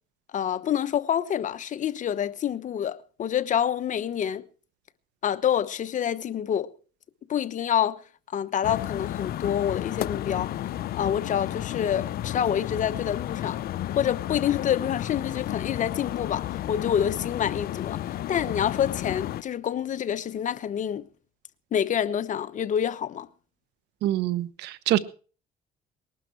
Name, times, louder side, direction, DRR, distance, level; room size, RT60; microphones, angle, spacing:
voice 1, 0.3-4.4 5.2-6.7 7.3-8.0 8.3-10.6 10.9-13.6 14.0-18.0 18.3-21.1 21.7-23.3, left 9 dB, 50° left, 1.1 m, -27 dB
sound 1, 8.6-19.4, left 13 dB, 65° left, 0.7 m, -32 dB
voice 2, 24.0-25.0, right 14 dB, 85° right, 1.2 m, -25 dB
20.5 x 12.0 x 4.7 m
cardioid pair, 110°, 17 cm